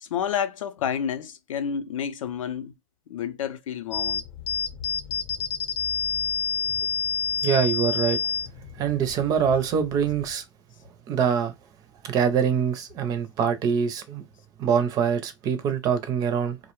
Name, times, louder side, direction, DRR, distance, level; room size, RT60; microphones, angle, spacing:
voice 1, 0.0-2.7 3.1-4.2 6.6-6.7, left 8 dB, 85° left, 0.5 m, -30 dB
sound 1, 3.9-10.3, left 6 dB, 50° left, 0.7 m, -29 dB
voice 2, 7.4-8.2 8.8-10.4 11.1-11.5 12.0-14.2 14.6-16.6, right 7 dB, 20° right, 0.4 m, -24 dB
2.3 x 2.1 x 2.9 m
hypercardioid pair, 145°, 17 cm